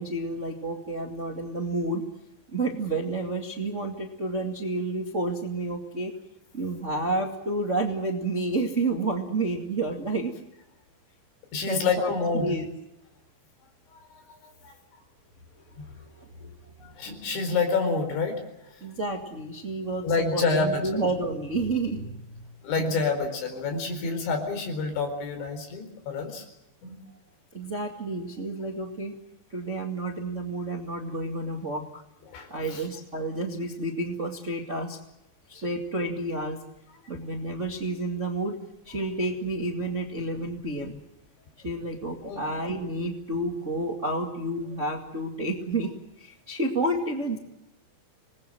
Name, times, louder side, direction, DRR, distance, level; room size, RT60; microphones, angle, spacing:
voice 1, 0.0-2.0 2.5-6.1 6.5-10.4 11.7-12.7 15.9-16.5 18.8-22.4 27.5-29.2 29.5-32.0 32.5-35.0 35.5-36.6 37.1-38.6 38.8-41.0 41.6-45.9 46.2-47.4, right 2 dB, 35° right, 3 dB, 1.2 m, -30 dB
voice 2, 11.5-12.6 14.3-14.7 16.8-18.4 20.0-21.1 22.6-26.5 26.8-27.0 32.3-32.9 42.2-42.4, left 4 dB, 85° left, 6 dB, 6.9 m, -28 dB
26.5 x 20.5 x 7.7 m, 0.90 s
omnidirectional pair, 5.2 m